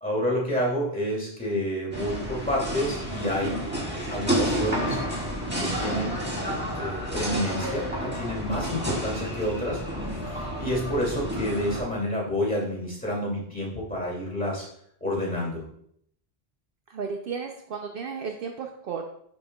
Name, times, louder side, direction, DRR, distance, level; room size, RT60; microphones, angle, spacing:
voice 1, 0.0-3.6 4.1-5.0 5.6-6.2 6.7-9.8 10.1-14.7 15.0-15.6, equal, 10° left, -4 dB, 2.2 m, -29 dB
sound 1, 1.9-11.8, equal, 10° right, 1.6 m, -30 dB
voice 2, 16.9-19.0, right 5 dB, 65° right, 3 dB, 0.7 m, -34 dB
10.5 x 4.3 x 2.2 m, 0.69 s
omnidirectional pair, 1.1 m